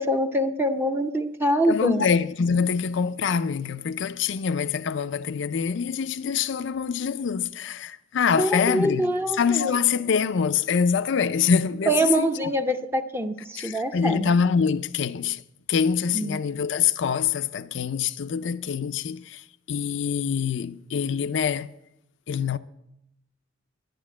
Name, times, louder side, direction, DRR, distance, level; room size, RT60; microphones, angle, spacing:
voice 1, 0.0-2.0 8.4-9.8 11.9-14.3 16.1-16.4, right 1 dB, 10° right, 0.6 m, -24 dB
voice 2, 1.7-12.3 13.6-15.4 15.7-21.7 22.3-22.6, left 6 dB, 65° left, 0.4 m, -25 dB
11.5 x 10.5 x 7.4 m
head